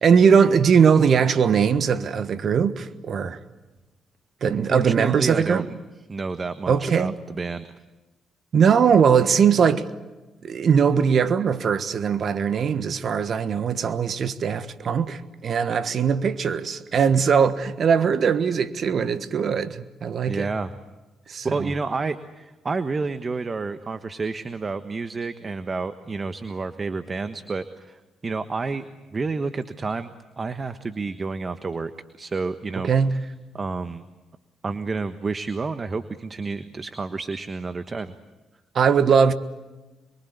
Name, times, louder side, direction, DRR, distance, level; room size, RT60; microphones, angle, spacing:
voice 1, 0.0-3.4 4.4-5.7 6.7-7.1 8.5-9.9 10.4-20.5 21.3-21.7 32.8-33.2 38.7-39.3, right 6 dB, 55° right, 1.4 m, -20 dB
voice 2, 4.5-5.6 6.1-7.7 20.3-20.7 21.4-31.9 32.2-34.0 34.6-38.1, right 4 dB, 40° right, 1.3 m, -30 dB
27.0 x 23.0 x 8.2 m
hypercardioid pair, 45°, 0 cm